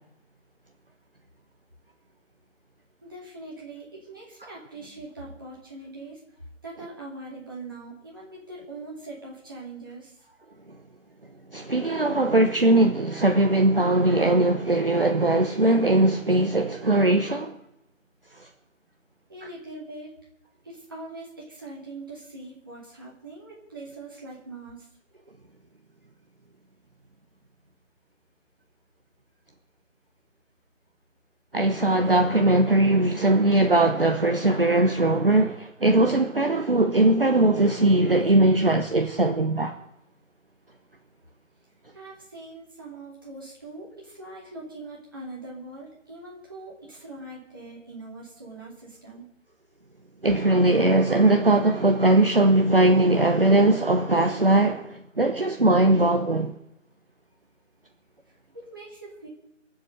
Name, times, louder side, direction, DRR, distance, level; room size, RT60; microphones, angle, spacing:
voice 1, 3.0-6.2 6.6-10.2 19.3-20.1 20.6-24.9 41.9-49.3 58.3-59.3, right 2 dB, 15° right, 2.5 m, -42 dB
voice 2, 11.5-17.6 18.4-18.5 31.5-39.7 50.2-56.5, right 2 dB, 45° right, 1.0 m, -20 dB
22.5 x 7.6 x 6.5 m
figure-of-eight pair, 175°, 39 cm